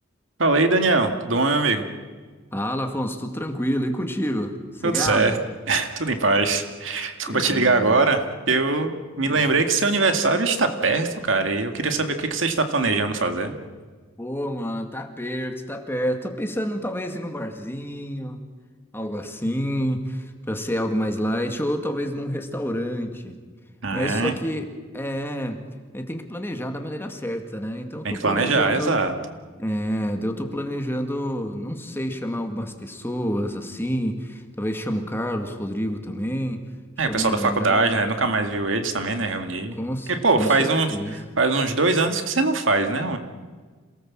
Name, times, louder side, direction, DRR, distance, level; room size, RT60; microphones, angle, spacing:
voice 1, 0.4-1.8 4.8-5.4 5.7-13.5 23.8-24.3 28.0-29.1 37.0-39.7 40.1-41.0 41.4-43.2, right 3 dB, 70° right, 6 dB, 2.2 m, -22 dB
voice 2, 2.5-5.4 7.3-8.0 9.2-9.5 14.2-18.4 18.9-23.4 23.9-24.7 24.9-25.6 25.9-29.0 29.6-36.6 37.0-38.0 39.8-41.2, equal, 10° left, 5 dB, 2.0 m, -28 dB
27.5 x 18.5 x 7.5 m, 1.4 s
head